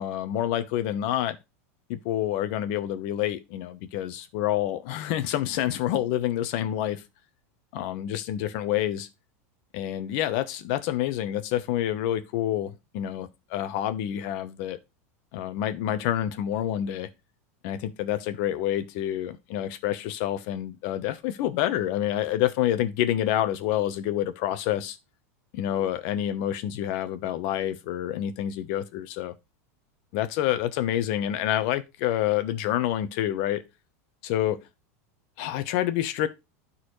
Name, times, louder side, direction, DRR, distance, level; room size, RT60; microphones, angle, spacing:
voice 1, 0.0-1.4 1.9-7.0 7.7-9.1 9.7-14.8 15.3-17.1 17.6-25.0 25.5-29.3 30.1-33.6 34.2-34.7 35.4-36.3, left 12 dB, 50° left, 1.0 m, -28 dB
12.0 x 4.2 x 3.2 m
supercardioid pair, 155°, 8 cm